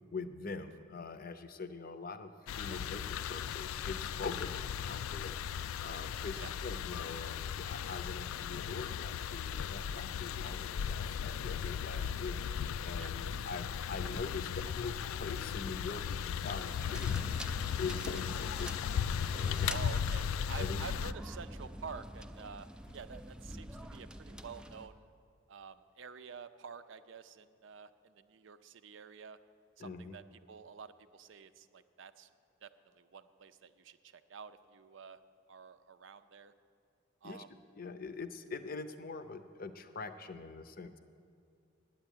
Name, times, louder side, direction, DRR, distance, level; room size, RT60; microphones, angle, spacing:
voice 1, 0.1-2.3 2.6-5.4 5.8-17.3 17.8-19.0 19.3-19.8 20.6-20.8 29.8-30.1 37.2-37.4 37.8-41.0, left 4 dB, 45° left, 10 dB, 0.6 m, -43 dB
sound 1, 2.5-21.1, left 8 dB, 90° left, 0.3 m, -37 dB
sound 2, 16.7-24.9, right 1 dB, 5° right, 0.3 m, -47 dB
voice 2, 19.6-22.7 22.9-25.1 25.5-29.4 29.8-32.3 32.6-35.2 35.5-36.5 37.2-37.5, right 6 dB, 65° right, 12 dB, 0.5 m, -49 dB
9.2 x 8.6 x 9.0 m, 2.5 s
head